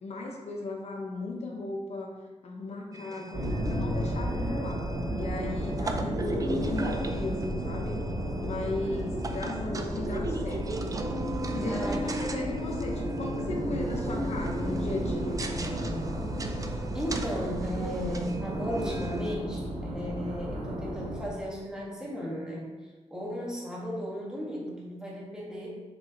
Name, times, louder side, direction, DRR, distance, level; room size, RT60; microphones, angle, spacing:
voice 1, 0.0-2.1 2.4-4.9 5.1-8.0 8.4-10.7 11.4-15.4, left 2 dB, 65° left, 0 dB, 1.0 m, -36 dB
sound 1, 2.9-19.4, right 2 dB, 30° right, 0.4 m, -40 dB
voice 2, 3.0-3.6 11.7-12.0 16.9-22.6 23.1-25.7, equal, 5° right, -5 dB, 1.5 m, -35 dB
sound 2, 3.3-21.3, equal, 90° right, 1.5 m, -32 dB
6.9 x 4.8 x 2.9 m, 1.2 s
wide cardioid pair, 160°, 12 cm